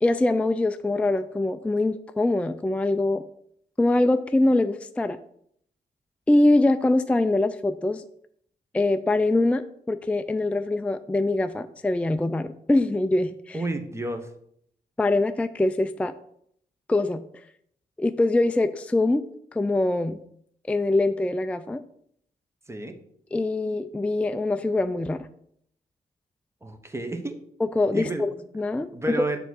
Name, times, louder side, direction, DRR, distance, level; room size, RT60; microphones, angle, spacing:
voice 1, 0.0-3.2 3.8-5.2 6.3-8.0 8.7-13.6 15.0-16.1 16.9-17.2 18.0-19.2 19.5-20.2 20.7-21.8 23.3-25.3 27.8-28.9, left 2 dB, 10° left, 9 dB, 0.3 m, -23 dB
voice 2, 13.5-14.3 22.7-23.0 26.6-27.4 27.9-28.4 28.9-29.4, right 2 dB, 15° right, 6 dB, 0.9 m, -31 dB
6.9 x 3.5 x 6.2 m, 0.68 s
cardioid pair, 85°, 17 cm